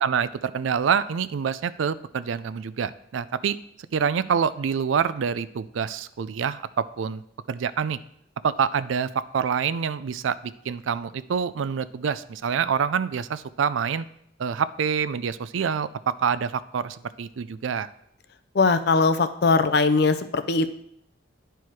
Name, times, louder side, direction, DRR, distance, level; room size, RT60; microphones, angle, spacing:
voice 1, 0.0-3.6 3.9-7.2 7.5-8.0 8.4-14.0 14.4-17.9, right 7 dB, 80° right, 16 dB, 0.4 m, -26 dB
voice 2, 18.5-20.7, left 4 dB, 55° left, 11 dB, 0.5 m, -20 dB
10.5 x 4.5 x 4.7 m, 0.72 s
head